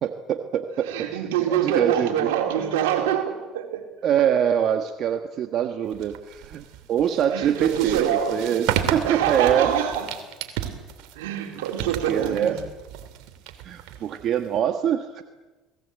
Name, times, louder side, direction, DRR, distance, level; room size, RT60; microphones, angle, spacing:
voice 1, 0.0-1.1 1.5-2.3 4.0-9.8 12.1-12.6 13.6-15.2, right 9 dB, 55° right, 7 dB, 1.5 m, -24 dB
voice 2, 0.8-3.9 7.3-10.1 11.1-12.6, right 9 dB, 90° right, 3 dB, 3.9 m, -25 dB
sound 1, 5.9-14.6, right 11 dB, 75° right, 2.8 m, -33 dB
29.0 x 19.0 x 8.3 m, 1.2 s
supercardioid pair, 90°, 0 cm